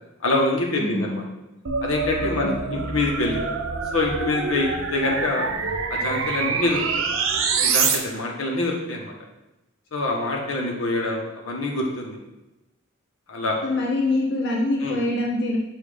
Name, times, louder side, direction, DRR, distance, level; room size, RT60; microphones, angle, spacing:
voice 1, 0.2-1.2 1.8-3.5 3.9-5.5 5.9-6.8 7.6-9.1 9.9-12.2 13.3-13.6 14.8-15.0, left 2 dB, 85° left, -1 dB, 1.2 m, -25 dB
voice 2, 0.8-1.2 2.4-2.9 13.6-15.6, left 2 dB, 55° left, -2 dB, 0.9 m, -25 dB
sound 1, 1.7-8.0, right 5 dB, 75° right, 0.7 m, -26 dB
7.3 x 2.7 x 5.0 m, 0.98 s
head